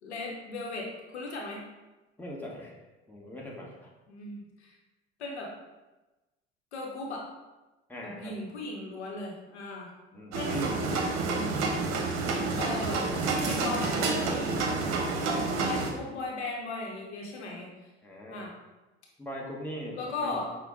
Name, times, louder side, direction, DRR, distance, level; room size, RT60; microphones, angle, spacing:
voice 1, 0.0-1.6 4.1-4.7 5.2-5.5 6.7-7.2 8.0-9.9 10.3-10.7 12.6-14.7 15.2-17.7 18.3-18.5 19.9-20.5, left 2 dB, 85° left, -1 dB, 0.8 m, -37 dB
voice 2, 2.2-2.7 3.1-3.9 7.9-8.3 10.1-10.4 18.0-18.5 19.2-20.4, equal, 5° left, -3 dB, 1.0 m, -41 dB
sound 1, 10.3-15.9, right 3 dB, 55° right, 0.8 m, -29 dB
5.6 x 2.1 x 3.5 m, 1.1 s
hypercardioid pair, 65°, 33 cm